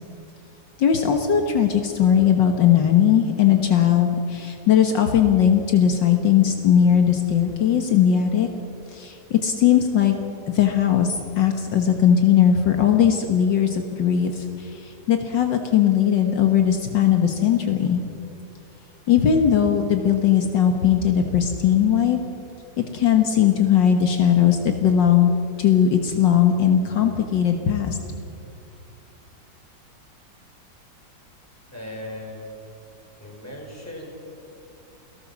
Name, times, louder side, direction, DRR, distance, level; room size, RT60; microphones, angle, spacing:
voice 1, 0.8-8.5 8.9-10.2 10.5-18.0 19.1-22.2 22.9-25.3 25.6-28.0, left 9 dB, 70° left, 5 dB, 2.0 m, -19 dB
voice 2, 31.7-32.6 33.2-34.1, left 1 dB, 5° left, -1 dB, 5.6 m, -37 dB
29.0 x 18.0 x 7.4 m, 2.6 s
omnidirectional pair, 2.1 m